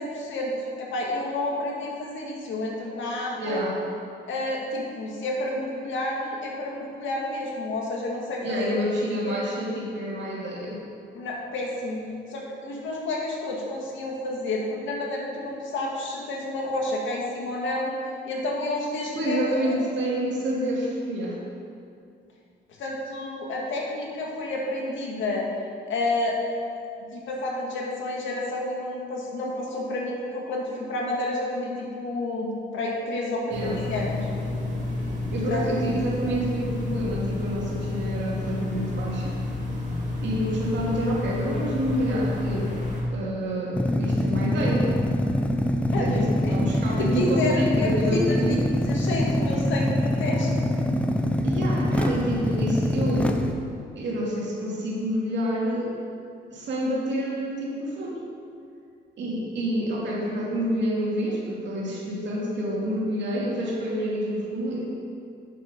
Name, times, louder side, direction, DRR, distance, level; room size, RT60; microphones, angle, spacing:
voice 1, 0.0-3.6 4.3-8.9 9.2-9.4 11.1-12.0 12.3-17.9 18.3-19.8 22.8-25.5 25.9-26.4 27.1-34.3 35.5-35.6 45.9-46.1 46.4-46.5 47.0-48.6 48.8-50.5, left 2 dB, 75° left, -2 dB, 2.0 m, -30 dB
voice 2, 3.4-3.8 8.4-10.8 19.2-21.4 33.5-33.8 35.3-39.4 40.2-42.8 43.1-45.0 45.9-48.5 51.4-53.5 54.0-55.9 56.5-58.2 59.2-64.8, equal, 65° right, -4 dB, 2.5 m, -28 dB
sound 1, 33.5-43.0, left 2 dB, 40° right, 2.1 m, -30 dB
sound 2, 43.7-53.5, left 1 dB, 5° left, 0.7 m, -24 dB
8.6 x 7.1 x 5.3 m, 2.4 s
cardioid pair, 90°, 20 cm